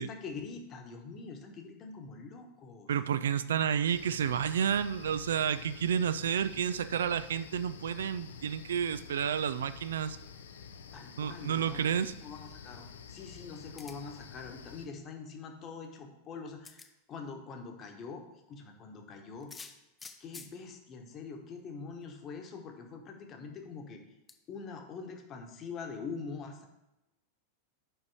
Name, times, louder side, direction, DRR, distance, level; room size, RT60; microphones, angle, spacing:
voice 1, 0.0-2.9 10.9-11.9 12.2-19.7 20.2-24.0 24.5-26.7, left 5 dB, 30° left, 3 dB, 1.2 m, -44 dB
voice 2, 2.9-10.2 11.2-12.1, right 8 dB, 65° right, 14 dB, 0.4 m, -30 dB
sound 1, 3.9-14.9, left 6 dB, 65° left, 0.6 m, -49 dB
sound 2, 13.8-14.2 15.8-15.9 16.6-16.9 19.4-20.5 21.6-21.7 22.0-22.1 24.3-24.4, left 4 dB, 15° left, 0.6 m, -48 dB
5.7 x 5.3 x 6.3 m, 0.95 s
figure-of-eight pair, 90°, 0 cm